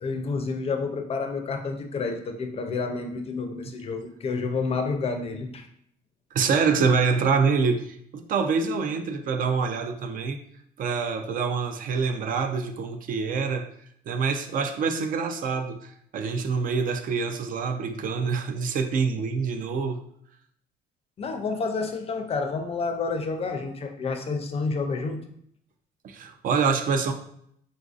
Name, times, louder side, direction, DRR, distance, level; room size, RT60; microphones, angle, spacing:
voice 1, 0.0-5.7 21.2-25.2, left 4 dB, 35° left, 5 dB, 0.4 m, -29 dB
voice 2, 6.3-10.4 10.8-13.7 14.1-20.0 26.0-27.1, right 5 dB, 55° right, 6 dB, 0.4 m, -26 dB
3.8 x 2.5 x 2.4 m, 0.69 s
cardioid pair, 110°, 17 cm